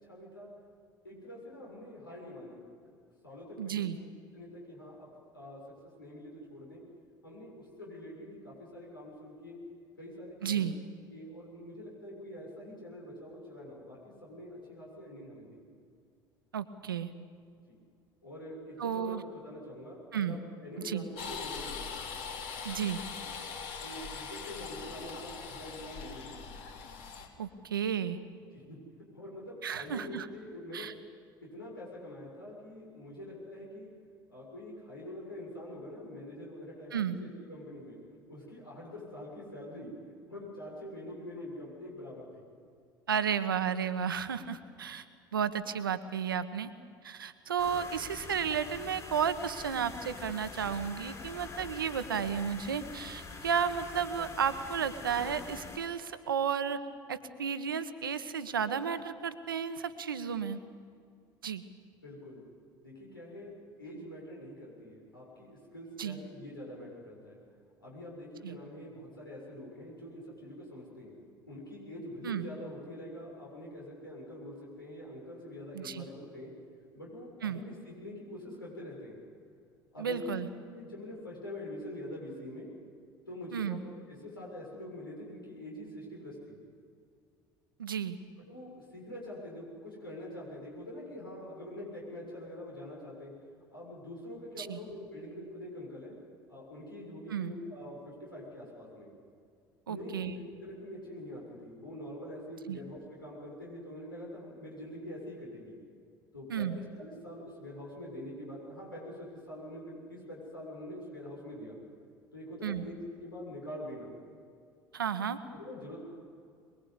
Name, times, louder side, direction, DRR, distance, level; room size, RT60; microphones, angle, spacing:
voice 1, 0.1-0.5 1.0-5.1 5.3-5.6 6.0-6.8 7.2-9.6 10.0-10.7 11.1-15.6 17.7-17.8 18.2-21.8 23.8-26.4 28.5-28.8 29.1-30.9 31.4-33.9 34.3-38.0 38.3-42.4 62.0-62.4 62.8-63.5 63.8-67.4 67.8-71.1 71.5-76.5 76.9-79.2 79.9-80.4 80.7-82.7 83.3-86.6 88.5-93.3 93.7-96.1 96.5-99.1 99.9-105.8 106.3-111.8 112.3-114.1 115.5-116.0, left 1 dB, 85° left, -4 dB, 7.2 m, -45 dB
voice 2, 3.6-4.0 10.4-10.7 16.5-17.1 18.8-19.2 20.1-20.4 20.8-21.0 22.6-23.0 27.4-28.2 29.6-30.3 30.7-30.9 36.9-37.2 43.1-45.0 45.3-46.7 47.0-56.8 57.1-60.6 61.4-61.6 66.0-66.2 68.4-68.6 72.2-72.5 75.7-76.1 77.4-77.6 80.0-80.5 83.5-83.8 87.8-88.2 94.6-94.8 97.3-97.5 99.9-100.3 102.7-102.8 106.5-106.8 112.6-112.9 114.9-115.4, right 7 dB, 80° right, 12 dB, 1.2 m, -33 dB
sound 1, 21.1-27.3, left 5 dB, 55° left, 3.4 m, -41 dB
sound 2, 47.6-55.8, left 4 dB, 25° left, 7.3 m, -45 dB
23.0 x 23.0 x 8.5 m, 2.3 s
figure-of-eight pair, 60°, 11 cm